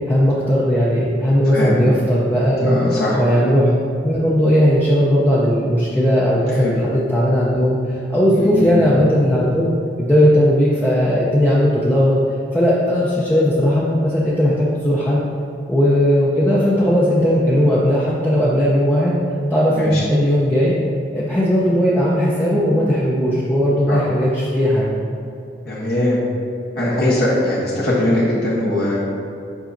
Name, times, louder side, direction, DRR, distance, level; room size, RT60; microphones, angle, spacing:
voice 1, 0.1-2.8 3.2-3.7 4.0-9.7 10.0-12.2 12.5-15.2 15.7-19.2 19.5-20.7 21.1-24.9, equal, 10° left, -7 dB, 0.6 m, -17 dB
voice 2, 1.5-1.9 2.6-3.2 6.6-6.7 8.4-8.9 19.7-20.0 23.9-24.0 25.7-26.2 26.8-29.0, left 1 dB, 55° left, -7 dB, 1.0 m, -20 dB
7.3 x 5.3 x 2.6 m, 2.7 s
head